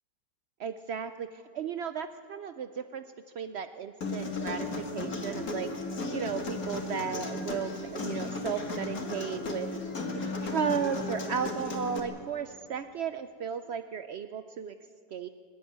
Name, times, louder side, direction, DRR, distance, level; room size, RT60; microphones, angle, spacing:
voice 1, 0.6-3.0 3.3-4.7 4.9-5.7 6.1-9.7 10.1-14.7 15.1-15.3, right 7 dB, 85° right, 9 dB, 0.5 m, -35 dB
Human voice, 4.0-12.0, left 3 dB, 55° left, 2.3 m, -35 dB
24.5 x 12.0 x 9.3 m, 2.2 s
omnidirectional pair, 1.9 m